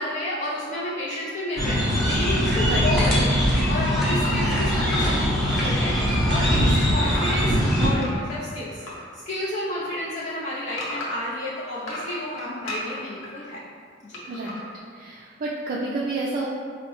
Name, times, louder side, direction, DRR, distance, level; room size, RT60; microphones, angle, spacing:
voice 1, 0.0-3.4 3.7-5.9 6.3-13.6 14.0-14.2, left 1 dB, 35° left, -7 dB, 0.4 m, -31 dB
sound 1, 1.6-7.9, equal, ahead, 0.6 m, -21 dB
sound 2, 4.2-6.1 6.3-9.1 9.4-11.3 11.7-13.3 14.1-14.6, equal, 85° left, 0.7 m, -36 dB
voice 2, 14.3-14.6 14.9-16.5, right 3 dB, 45° right, -4 dB, 0.3 m, -29 dB
4.4 x 2.0 x 2.9 m, 2.1 s
head